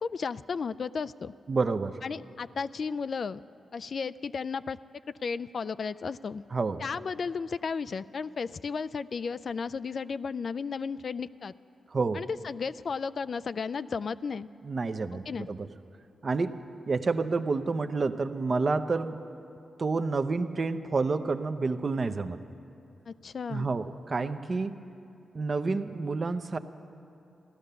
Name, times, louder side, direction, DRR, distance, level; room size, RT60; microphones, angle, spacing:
voice 1, 0.0-1.3 2.0-3.4 3.7-4.8 5.2-6.4 6.8-11.5 12.1-14.5 15.1-15.5 23.1-23.7, left 5 dB, 60° left, 14 dB, 0.3 m, -34 dB
voice 2, 1.5-2.0 6.5-6.8 11.9-12.2 14.6-15.7 16.2-16.6 16.9-19.2 19.8-22.4 23.5-24.7 25.3-26.6, right 4 dB, 50° right, 9 dB, 0.7 m, -29 dB
15.5 x 12.0 x 6.8 m, 2.8 s
cardioid pair, 55°, 0 cm